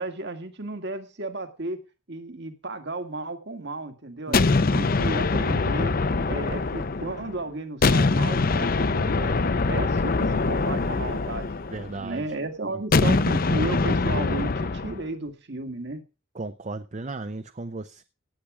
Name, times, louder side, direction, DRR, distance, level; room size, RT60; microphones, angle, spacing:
voice 1, 0.0-1.8 2.1-6.0 6.3-9.4 9.7-11.5 12.0-16.0, right 2 dB, 60° right, 1.9 m, -34 dB
sound 1, 4.3-7.4 7.8-12.1 12.9-15.0, left 3 dB, 50° left, 0.7 m, -23 dB
voice 2, 4.3-5.0 11.7-12.3 16.3-18.0, right 3 dB, 35° right, 0.6 m, -36 dB
17.0 x 8.5 x 4.9 m
head